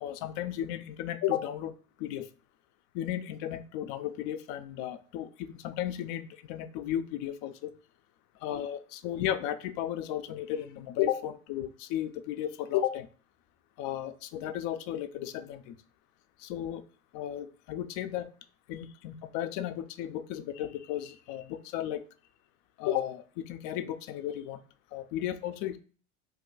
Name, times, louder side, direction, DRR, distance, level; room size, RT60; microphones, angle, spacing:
voice 1, 0.0-2.3 2.9-7.7 8.4-13.1 13.8-15.8 16.4-16.8 17.1-18.3 18.7-22.0 22.8-24.6 24.9-25.8, left 11 dB, 55° left, 10 dB, 0.5 m, -34 dB
2.7 x 2.2 x 3.8 m, 0.40 s
hypercardioid pair, 85°, 38 cm